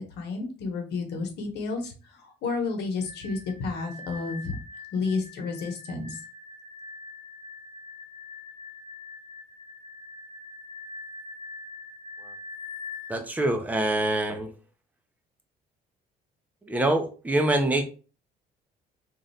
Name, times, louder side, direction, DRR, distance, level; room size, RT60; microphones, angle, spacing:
voice 1, 0.0-1.9 2.2-4.5 4.9-6.2, left 4 dB, 75° left, 4 dB, 1.1 m, -31 dB
sound 1, 3.0-13.2, left 3 dB, 25° left, 0.8 m, -43 dB
voice 2, 13.1-14.5 16.7-17.8, right 1 dB, 10° right, 4 dB, 0.8 m, -25 dB
3.1 x 2.6 x 4.1 m, 0.35 s
cardioid pair, 110°, 17 cm